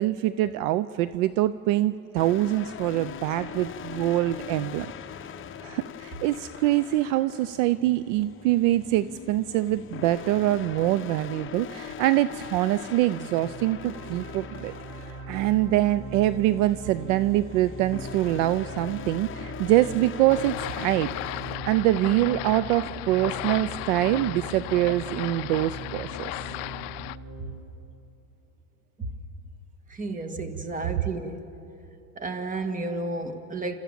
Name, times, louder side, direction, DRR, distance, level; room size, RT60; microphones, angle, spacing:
voice 1, 0.0-4.9 5.6-14.7 15.0-21.1 21.7-26.3, right 15 dB, 60° right, 15 dB, 0.6 m, -24 dB
sound 1, 2.2-21.6, left 9 dB, 30° left, 0.9 m, -41 dB
sound 2, 13.2-27.5, right 3 dB, 35° right, 6.9 m, -41 dB
sound 3, 20.3-27.2, left 20 dB, 50° left, 0.5 m, -35 dB
voice 2, 29.9-31.4 32.2-33.7, right 2 dB, 20° right, 7 dB, 1.8 m, -32 dB
29.5 x 14.0 x 7.6 m, 2.9 s
hypercardioid pair, 105°, 43 cm